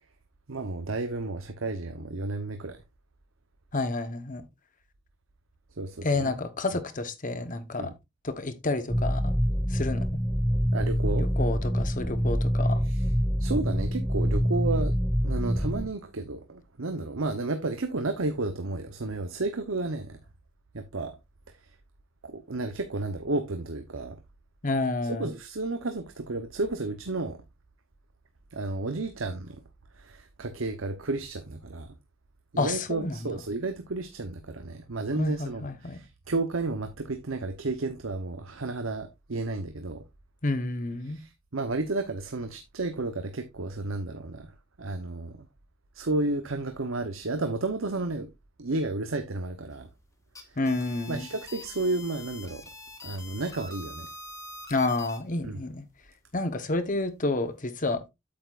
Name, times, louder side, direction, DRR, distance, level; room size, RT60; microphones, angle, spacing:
voice 1, 0.5-2.8 5.8-6.3 7.8-7.9 10.7-11.3 12.8-13.0 13.4-14.9 15.2-20.2 20.7-21.2 22.2-24.2 25.2-27.4 28.5-29.6 29.9-31.9 32.5-40.0 41.0-44.5 44.8-45.5 45.9-48.3 48.6-49.9 51.1-52.6 53.0-54.1 55.4-55.6, right 2 dB, 85° right, 0.9 m, -32 dB
voice 2, 3.7-4.4 6.0-7.9 8.2-9.3 9.7-10.0 11.4-12.8 24.6-25.3 32.6-33.2 35.2-36.0 40.4-41.2 50.6-51.3 54.7-55.8 56.3-58.1, left 2 dB, 40° left, 1.2 m, -29 dB
sound 1, 8.9-15.9, equal, ahead, 0.7 m, -26 dB
sound 2, 50.2-55.2, left 2 dB, 15° left, 1.7 m, -44 dB
8.7 x 8.0 x 2.5 m
head